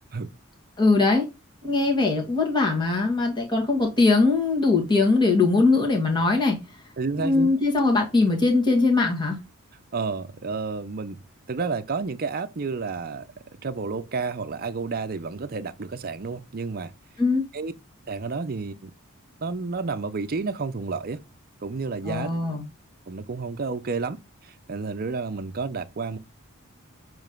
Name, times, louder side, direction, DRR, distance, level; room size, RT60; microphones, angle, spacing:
voice 1, 0.8-1.3 1.6-6.6 7.2-9.4 17.2-17.4 22.0-22.6, left 3 dB, 20° left, 1.8 m, -21 dB
voice 2, 7.0-7.5 9.9-11.2 11.5-13.3 13.6-16.9 17.5-17.7 18.1-18.9 19.4-21.2 21.6-22.3 23.1-24.2 24.4-26.2, right 4 dB, 45° right, 0.6 m, -30 dB
7.1 x 3.2 x 5.2 m
head